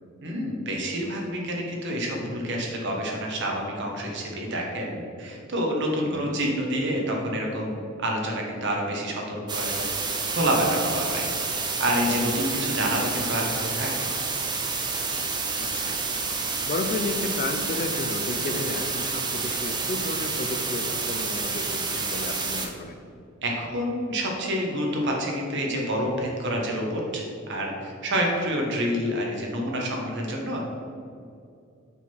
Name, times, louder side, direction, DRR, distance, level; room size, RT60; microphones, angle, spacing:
voice 1, 0.2-9.9 10.3-11.2 11.8-14.1 23.4-30.6, equal, 60° right, 0 dB, 1.3 m, -28 dB
voice 2, 6.1-6.4 15.6-16.0 16.4-23.0, left 2 dB, 40° left, 7 dB, 0.5 m, -33 dB
sound 1, 9.5-22.7, right 4 dB, 20° right, 0.7 m, -29 dB
6.0 x 3.7 x 5.9 m, 2.4 s
head